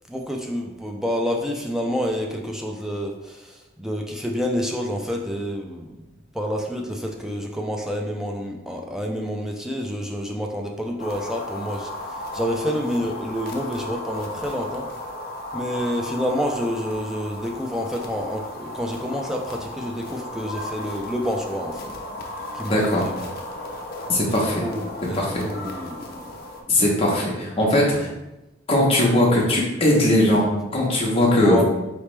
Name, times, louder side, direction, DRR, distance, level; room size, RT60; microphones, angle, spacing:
voice 1, 0.1-6.1 6.3-14.9 15.5-22.0 22.5-23.1 24.3-26.3 27.6-27.7 31.4-31.6, equal, 5° right, 1 dB, 0.4 m, -28 dB
sound 1, 11.0-26.6, left 1 dB, 50° left, 0.5 m, -35 dB
voice 2, 22.7-23.0 24.1-24.6 25.2-25.4 26.7-28.1 28.7-30.5 30.7-31.6, left 1 dB, 30° left, -3 dB, 1.0 m, -19 dB
4.0 x 3.2 x 3.2 m, 0.98 s
head